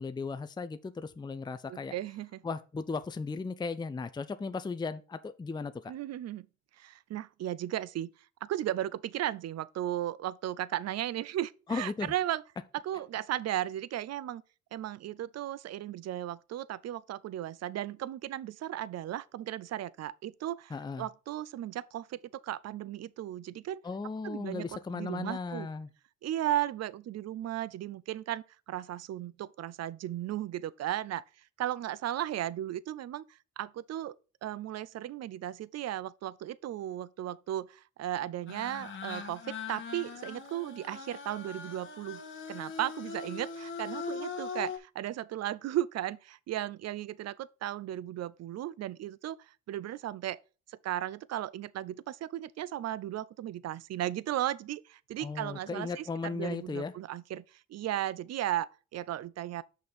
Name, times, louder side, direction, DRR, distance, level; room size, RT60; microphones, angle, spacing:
voice 1, 0.0-1.9 2.4-5.9 11.7-12.1 20.7-21.1 23.8-25.9 55.2-56.9, left 4 dB, 15° left, 0.5 m, -36 dB
voice 2, 1.7-2.4 5.9-6.5 6.8-8.1 8.4-12.4 12.7-14.4 14.7-23.8 24.2-24.7 24.9-25.7 26.2-31.2 31.6-33.2 33.6-34.1 34.4-42.2 42.5-50.4 50.7-59.6, right 12 dB, 55° right, 0.5 m, -35 dB
sound 1, 38.5-44.8, left 5 dB, 40° left, 1.6 m, -41 dB
6.4 x 5.3 x 4.3 m
cardioid pair, 90°, 30 cm